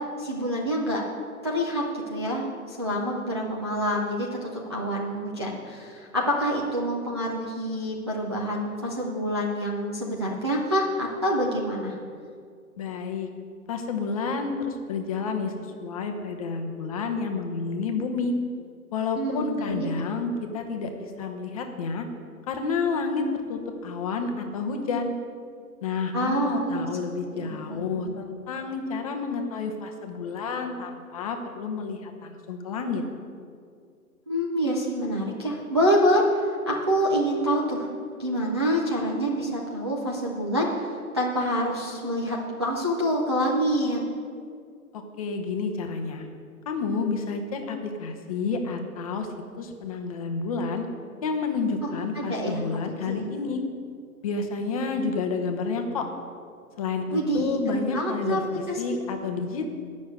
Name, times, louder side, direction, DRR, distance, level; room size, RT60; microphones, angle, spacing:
voice 1, 0.2-1.0 1.4-12.0 19.2-19.9 26.1-26.9 27.3-28.1 34.3-36.4 36.7-37.9 38.2-40.9 41.1-44.0 52.1-53.3 57.1-58.4 58.7-58.8, equal, 20° right, -4 dB, 0.4 m, -27 dB
voice 2, 12.8-13.3 13.7-18.3 18.9-22.1 22.5-23.2 23.5-25.1 25.8-33.0 44.9-46.3 46.7-49.3 49.6-50.9 51.2-53.6 54.2-56.1 56.8-59.7, left 4 dB, 25° left, 5 dB, 0.8 m, -30 dB
9.4 x 6.3 x 8.0 m, 2.3 s
hypercardioid pair, 140°, 45 cm